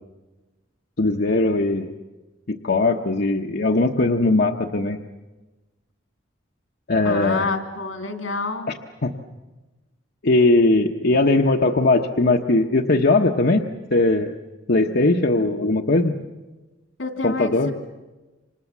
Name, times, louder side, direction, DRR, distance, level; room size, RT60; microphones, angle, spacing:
voice 1, 1.0-1.9 2.5-5.0 6.9-7.4 9.0-9.1 10.2-13.6 13.9-14.3 14.7-16.1 17.2-17.7, left 2 dB, 55° left, 2 dB, 1.0 m, -19 dB
voice 2, 7.0-8.7 17.0-17.7, left 3 dB, 85° left, 6 dB, 2.9 m, -28 dB
28.0 x 26.0 x 7.4 m, 1.2 s
head